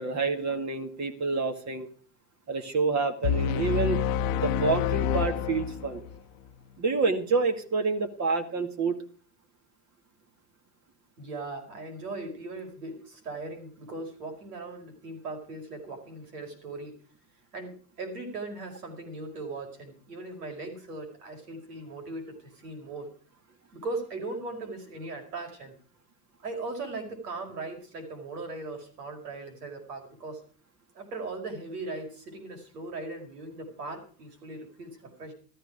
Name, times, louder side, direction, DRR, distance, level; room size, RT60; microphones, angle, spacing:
voice 1, 0.0-1.9 2.5-4.0 4.3-6.0 6.8-9.0, right 4 dB, 35° right, 6 dB, 2.2 m, -28 dB
sound 1, 3.2-6.2, left 9 dB, 60° left, 0.9 m, -28 dB
voice 2, 11.2-16.9 17.5-23.1 23.7-25.8 26.4-30.4 30.9-35.3, right 2 dB, 80° right, 4 dB, 5.0 m, -39 dB
14.0 x 13.5 x 4.9 m, 0.42 s
hypercardioid pair, 80°, 46 cm